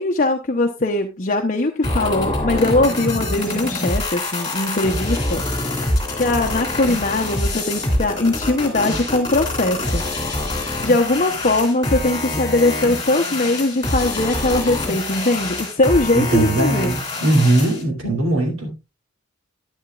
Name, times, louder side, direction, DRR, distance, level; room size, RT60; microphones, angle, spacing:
voice 1, 0.0-10.0 10.4-16.9, left 2 dB, 40° left, 3 dB, 0.8 m, -21 dB
sound 1, 1.8-17.8, left 2 dB, 20° left, 2.8 m, -25 dB
voice 2, 16.1-18.7, right 2 dB, 80° right, 0 dB, 2.9 m, -19 dB
11.0 x 10.0 x 2.3 m, 0.25 s
head